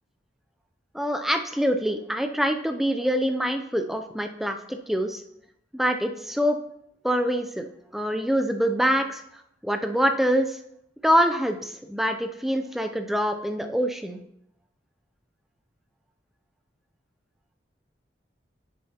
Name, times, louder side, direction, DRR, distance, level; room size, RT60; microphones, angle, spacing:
voice 1, 0.9-5.2 5.7-6.6 7.0-10.6 11.0-14.2, equal, ahead, 5 dB, 0.4 m, -25 dB
9.8 x 6.8 x 2.8 m, 0.77 s
head